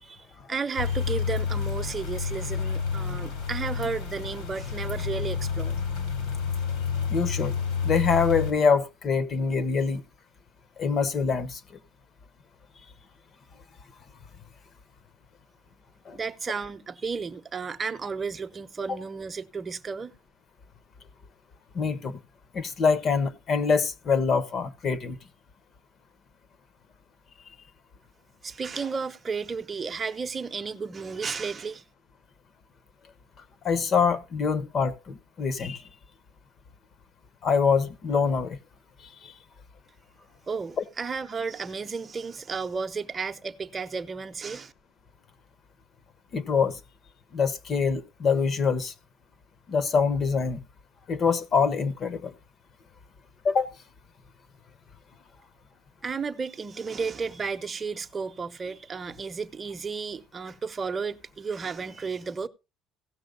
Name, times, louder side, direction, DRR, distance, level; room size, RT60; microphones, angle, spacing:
voice 1, 0.0-5.8 16.1-20.1 28.4-31.8 40.5-44.7 56.0-62.5, right 5 dB, 25° right, 0.9 m, -33 dB
sound 1, 0.8-8.5, left 6 dB, 80° left, 3.4 m, -29 dB
voice 2, 7.1-7.5 7.8-10.0 10.8-11.6 16.0-16.2 21.7-22.2 22.5-25.2 27.5-27.6 33.6-35.9 37.4-38.6 39.2-39.3 40.8-40.9 46.3-46.8 47.3-48.9 49.7-50.6 51.1-52.3 53.4-53.7, left 5 dB, 40° left, 1.1 m, -25 dB
16.0 x 6.3 x 3.9 m
cardioid pair, 120°, 0 cm